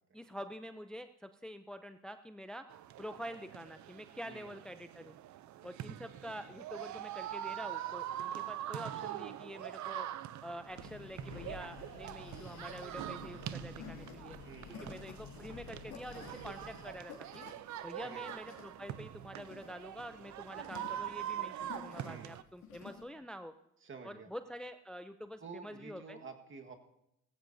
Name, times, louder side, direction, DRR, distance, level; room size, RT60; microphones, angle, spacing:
voice 1, 0.1-2.6 3.0-5.2 5.6-10.1 10.4-14.4 14.8-17.4 17.8-23.5 24.0-26.2, equal, 5° left, 9 dB, 0.5 m, -47 dB
sound 1, 2.7-22.4, right 12 dB, 70° right, 0.6 m, -44 dB
voice 2, 4.2-4.6 14.4-15.1 18.0-18.4 22.0-22.3 23.8-24.3 25.4-26.8, right 4 dB, 40° right, 4 dB, 1.6 m, -50 dB
Breathing, 10.5-17.2, left 8 dB, 70° left, 1.0 m, -52 dB
sound 2, 12.4-23.0, left 7 dB, 90° left, 2.6 m, -53 dB
18.5 x 15.5 x 2.7 m, 0.83 s
cardioid pair, 90°, 30 cm